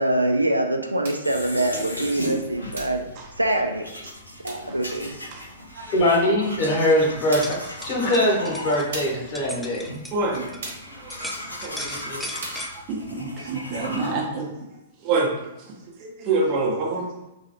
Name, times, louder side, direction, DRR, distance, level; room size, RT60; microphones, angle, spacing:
voice 1, 0.0-3.1 3.4-3.9 4.4-5.2, right 1 dB, 85° right, 4 dB, 0.3 m, -24 dB
sound 1, 1.0-1.3 2.7-3.1 4.4-4.7 6.5-6.6 7.3-7.7 8.9-9.3 10.6-10.9 12.4-12.7, right 2 dB, 60° right, 1.0 m, -37 dB
sound 2, 1.2-14.1, equal, 85° left, 0.9 m, -37 dB
voice 2, 5.9-7.5 7.8-9.8, left 1 dB, 40° left, -4 dB, 1.1 m, -21 dB
sound 3, 7.4-10.8 11.1-12.7, left 1 dB, 5° left, 0.3 m, -38 dB
voice 3, 10.1-10.5 11.0-11.1 11.5-12.3 12.9-14.5 15.0-15.3 16.0-17.1, right 3 dB, 35° right, -1 dB, 0.7 m, -26 dB
3.0 x 2.4 x 2.7 m, 0.93 s
figure-of-eight pair, 105°, 0 cm